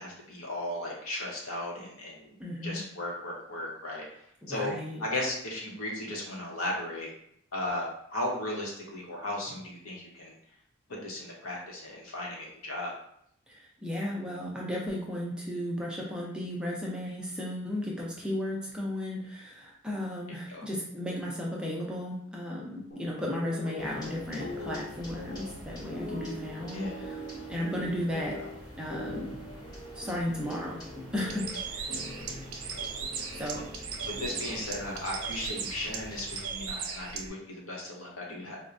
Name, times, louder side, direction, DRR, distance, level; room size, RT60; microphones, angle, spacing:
voice 1, 0.0-2.3 2.6-4.0 4.5-4.7 5.0-7.1 7.5-10.3 11.0-12.9 20.5-20.6 26.7-27.0 34.0-38.6, left 1 dB, 80° left, -2 dB, 0.9 m, -36 dB
voice 2, 2.4-2.8 4.4-5.0 13.5-28.4 28.8-29.3 29.9-30.8 31.1-31.9 33.3-33.6, left 1 dB, 5° right, -4 dB, 0.4 m, -35 dB
sound 1, 22.9-34.7, left 1 dB, 40° left, 0.5 m, -43 dB
sound 2, 23.8-36.5, equal, 20° left, 0.8 m, -48 dB
Bird, 31.2-37.3, right 5 dB, 80° right, 0.5 m, -38 dB
4.3 x 2.1 x 2.5 m, 0.70 s
head